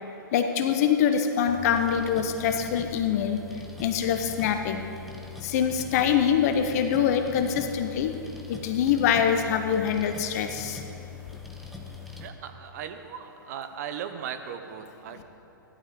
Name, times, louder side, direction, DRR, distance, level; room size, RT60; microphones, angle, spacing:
voice 1, 0.3-3.4 3.8-4.9 5.4-8.2 8.5-10.8, left 8 dB, 45° left, 7 dB, 1.0 m, -24 dB
sound 1, 1.5-12.3, left 6 dB, ahead, 1.0 m, -42 dB
voice 2, 12.2-15.2, right 8 dB, 50° right, 8 dB, 1.0 m, -37 dB
16.5 x 11.5 x 3.8 m, 2.8 s
figure-of-eight pair, 115°, 11 cm